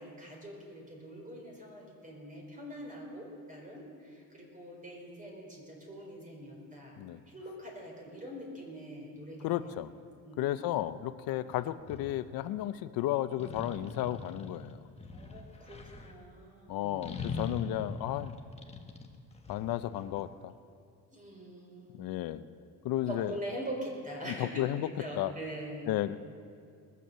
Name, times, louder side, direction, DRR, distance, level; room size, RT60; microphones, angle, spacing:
voice 1, 0.0-6.9 7.3-9.4 9.7-9.8 10.2-10.7 15.1-17.1 21.1-22.2 23.1-25.9, right 1 dB, 25° right, -1 dB, 4.7 m, -43 dB
voice 2, 9.4-9.9 10.4-14.8 16.7-18.3 19.5-20.5 21.9-22.4 22.8-23.4 24.2-24.9 25.2-25.3 25.9-26.2, left 13 dB, 85° left, 13 dB, 0.6 m, -33 dB
sound 1, 11.5-12.2 13.4-16.1 17.0-20.2, left 4 dB, 20° left, 1.3 m, -42 dB
20.5 x 8.3 x 7.5 m, 2.4 s
cardioid pair, 125°, 34 cm